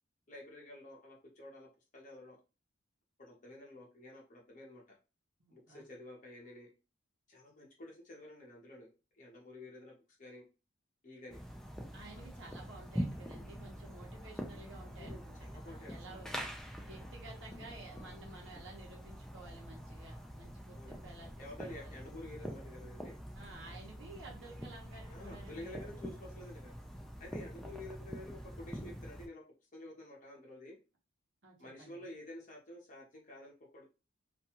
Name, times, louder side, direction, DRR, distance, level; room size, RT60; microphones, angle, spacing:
voice 1, 0.3-2.4 3.2-5.0 5.5-6.7 7.3-10.4 11.0-11.4 15.0-16.2 20.7-21.1 21.4-23.2 25.1-26.7 27.2-29.4 29.7-30.8 31.6-33.8, left 1 dB, 40° left, -1 dB, 0.9 m, -50 dB
voice 2, 5.4-5.8 11.9-16.3 16.9-21.3 21.6-22.0 23.3-26.2 27.5-27.8 31.4-32.0, right 2 dB, 70° right, -1 dB, 1.0 m, -53 dB
sound 1, 11.3-29.3, equal, ahead, 0.3 m, -45 dB
2.6 x 2.3 x 2.8 m, 0.30 s
head